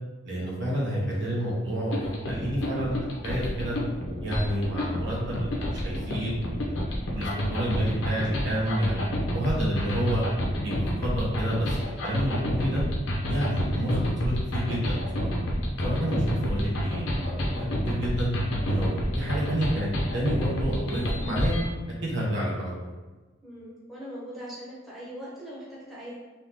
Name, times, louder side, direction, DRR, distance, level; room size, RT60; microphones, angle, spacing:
voice 1, 0.2-3.0 3.2-3.8 4.2-6.8 7.1-10.2 10.6-12.8 13.3-15.3 15.8-18.3 18.7-21.6 22.0-22.9, equal, 60° right, -6 dB, 1.3 m, -29 dB
sound 1, 1.9-21.7, equal, 80° left, 0.8 m, -29 dB
voice 2, 23.4-26.1, equal, ahead, -7 dB, 1.1 m, -41 dB
3.8 x 3.0 x 3.5 m, 1.2 s
head